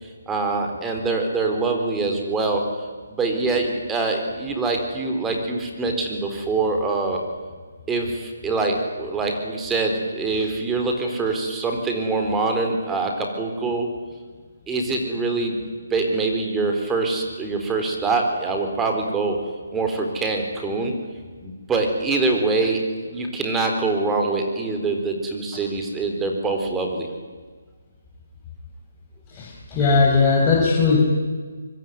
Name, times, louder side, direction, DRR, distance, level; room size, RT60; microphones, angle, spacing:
voice 1, 0.0-2.6 3.1-7.2 7.9-13.9 14.7-15.6 15.9-19.4 19.7-21.0 21.4-27.1, right 3 dB, 10° right, 3 dB, 4.1 m, -24 dB
voice 2, 29.3-31.0, left 4 dB, 20° left, -4 dB, 5.0 m, -18 dB
24.5 x 23.0 x 9.5 m, 1.5 s
hypercardioid pair, 155°, 0 cm